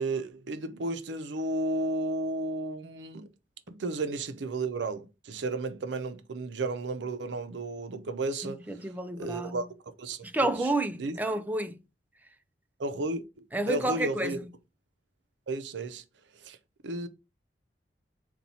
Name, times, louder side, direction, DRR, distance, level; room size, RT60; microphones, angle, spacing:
voice 1, 0.0-3.3 3.7-10.2 10.6-10.7 11.0-11.2 12.8-14.4 15.5-16.0 16.3-16.6 16.8-17.1, right 2 dB, 90° right, 0.5 m, -33 dB
voice 2, 8.7-9.6 10.2-11.8 13.5-14.4, right 2 dB, 10° right, 0.4 m, -30 dB
4.1 x 2.3 x 4.1 m
head